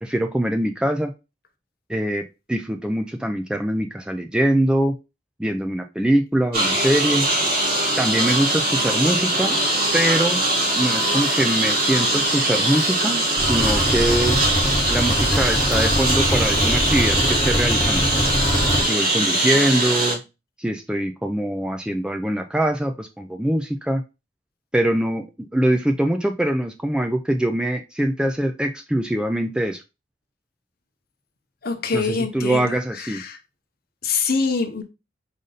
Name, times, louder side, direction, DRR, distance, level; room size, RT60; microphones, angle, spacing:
voice 1, 0.0-1.1 1.9-5.0 5.4-7.3 8.0-9.6 9.9-10.4 10.8-14.4 14.9-18.0 18.8-20.2 20.6-24.0 24.7-25.3 25.5-29.8 31.9-33.2, right 1 dB, 5° right, 0.3 m, -23 dB
Engine, 6.5-20.1, right 1 dB, 55° right, 2.6 m, -21 dB
sound 1, 13.4-18.8, equal, 20° left, 0.8 m, -23 dB
voice 2, 31.6-33.4 34.0-34.8, left 4 dB, 55° left, 0.8 m, -25 dB
5.1 x 2.6 x 3.9 m
head